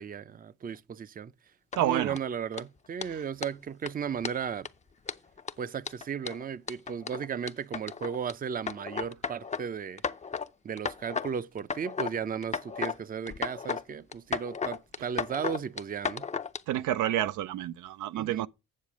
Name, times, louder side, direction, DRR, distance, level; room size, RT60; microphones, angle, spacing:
voice 1, 0.0-1.3 1.8-4.7 5.6-10.0 10.6-16.3 18.1-18.5, right 7 dB, 30° right, 0.5 m, -35 dB
sound 1, 1.7-2.2 2.5-2.6 3.0-3.1 3.4-3.5 3.9-4.0 4.2-4.7 5.1-8.3 8.7-9.6 10.0-10.5 10.8-11.3 11.6-12.1 12.4-13.0 13.3-13.8 14.1-16.6, left 5 dB, 25° left, 0.6 m, -34 dB
voice 2, 1.7-2.2 3.1-3.2 16.7-18.5, right 12 dB, 80° right, 0.5 m, -29 dB
8.5 x 7.1 x 6.1 m
cardioid pair, 90°, 30 cm